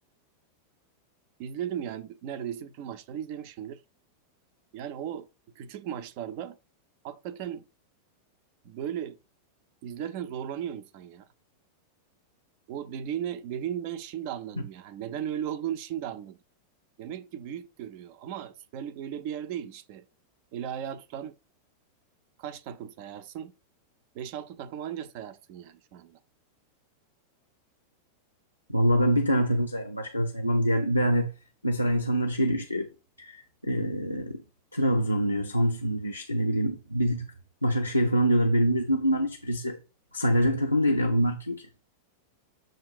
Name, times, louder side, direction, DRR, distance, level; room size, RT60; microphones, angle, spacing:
voice 1, 1.4-3.8 4.7-5.3 5.6-6.6 7.0-7.7 8.6-9.2 9.8-11.3 12.7-16.4 17.0-20.1 20.5-21.4 22.4-23.5 24.1-26.2, right 9 dB, 45° right, 0.5 m, -36 dB
voice 2, 28.7-31.3 31.6-32.9 33.2-34.4 34.7-37.3 37.6-39.8 40.1-41.7, equal, 85° left, 0.6 m, -25 dB
7.5 x 2.5 x 5.3 m
figure-of-eight pair, 90°, 0 cm